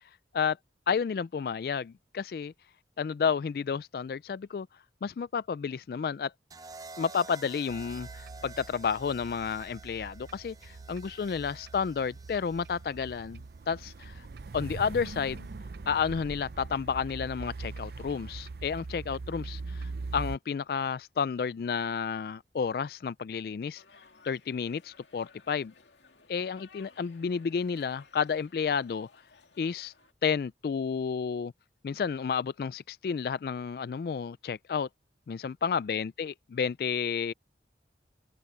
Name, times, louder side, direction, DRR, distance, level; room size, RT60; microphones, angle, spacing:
voice 1, 0.9-2.5 3.0-4.7 5.0-6.3 7.0-14.2 14.5-15.5 15.9-23.8 24.2-25.7 26.3-29.1 29.6-29.9 30.2-31.5 31.8-34.9 35.3-37.3, left 6 dB, 55° left, 0.3 m, -31 dB
sound 1, 6.5-14.6 15.9-16.2, right 4 dB, 20° right, 0.6 m, -51 dB
sound 2, 7.7-20.4, right 3 dB, 60° right, 0.5 m, -42 dB
sound 3, 23.7-30.1, left 5 dB, 85° left, 2.4 m, -59 dB
head